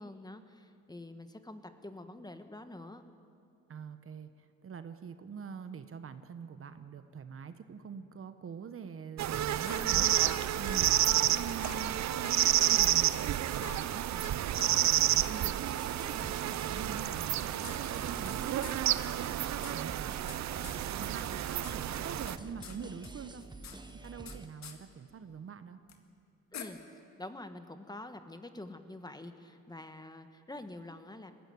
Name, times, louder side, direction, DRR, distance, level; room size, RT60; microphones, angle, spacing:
voice 1, 0.0-3.0 9.7-10.0 10.9-11.4 26.5-26.8 27.2-31.3, left 2 dB, 15° left, 8 dB, 1.3 m, -46 dB
voice 2, 3.7-10.1 10.6-19.1 19.7-20.1 20.9-23.4 24.0-25.8, right 6 dB, 45° right, 10 dB, 1.1 m, -44 dB
sound 1, 9.2-22.4, right 12 dB, 65° right, 0.7 m, -30 dB
sound 2, 9.7-10.4 10.6-10.8 11.1-11.2 11.5-12.3 12.6-12.7 13.1-13.2 13.5-14.3 14.6-14.7 15.1-15.2 16.0-16.1 17.1-18.3 18.6-18.8 19.0-19.1 19.4-20.4 20.6-20.8 21.1-21.8 22.0-22.8 23.0-24.4 24.6-24.8 25.9-26.0 26.5-26.6, left 8 dB, 65° left, 2.0 m, -46 dB
sound 3, 14.9-24.5, right 3 dB, 15° right, 1.0 m, -48 dB
21.0 x 15.0 x 9.6 m, 2.5 s
cardioid pair, 90°, 30 cm